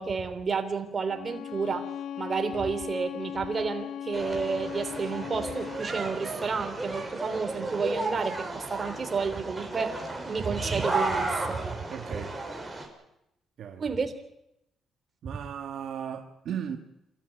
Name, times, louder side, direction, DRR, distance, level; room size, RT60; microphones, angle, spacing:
voice 1, 0.0-1.8 2.2-11.8 13.8-14.1 15.3-15.4, right 5 dB, 35° right, 3.4 m, -31 dB
Bowed string instrument, 1.1-5.9, left 9 dB, 75° left, 1.0 m, -38 dB
sound 1, 4.1-12.9, right 2 dB, 15° right, 6.4 m, -33 dB
voice 2, 11.9-12.6 13.6-13.9 15.2-16.8, right 8 dB, 70° right, 1.8 m, -36 dB
27.5 x 14.0 x 9.4 m
cardioid pair, 90°, 0 cm